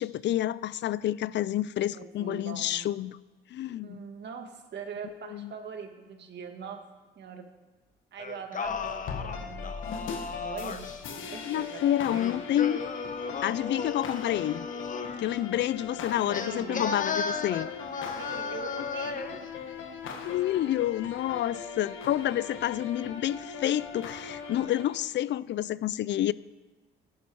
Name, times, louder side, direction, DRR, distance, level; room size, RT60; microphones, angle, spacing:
voice 1, 0.0-3.2 3.5-4.0 5.3-5.5 11.4-12.8 13.4-14.7 15.2-17.7 20.2-26.3, left 12 dB, 65° left, 0.5 m, -29 dB
voice 2, 1.9-2.9 3.8-6.8 7.2-7.5 8.1-9.7 10.2-12.2 16.2-17.0 18.1-19.4, right 6 dB, 60° right, 1.8 m, -42 dB
Singing, 8.2-11.0 12.1-15.3 16.3-19.4, left 5 dB, 40° left, 1.1 m, -35 dB
sound 1, 8.6-24.8, left 5 dB, 80° left, 1.5 m, -40 dB
16.5 x 10.5 x 4.8 m
cardioid pair, 90°, 20 cm